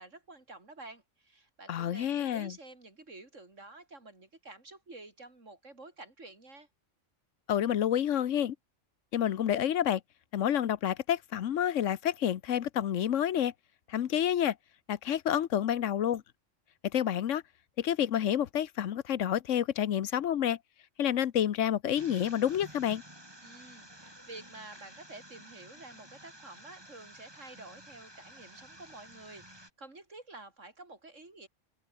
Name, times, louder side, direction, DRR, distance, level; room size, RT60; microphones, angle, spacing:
voice 1, 0.0-6.7 23.4-31.5, right 2 dB, 85° right, 4.7 m, -50 dB
voice 2, 1.7-2.5 7.5-8.5 9.1-10.0 10.3-13.5 13.9-14.5 14.9-16.2 16.9-17.4 17.8-20.6 21.0-23.0, left 10 dB, 85° left, 1.2 m, -29 dB
sound 1, 22.0-29.7, right 1 dB, 20° right, 5.2 m, -52 dB
omnidirectional pair, 1.3 m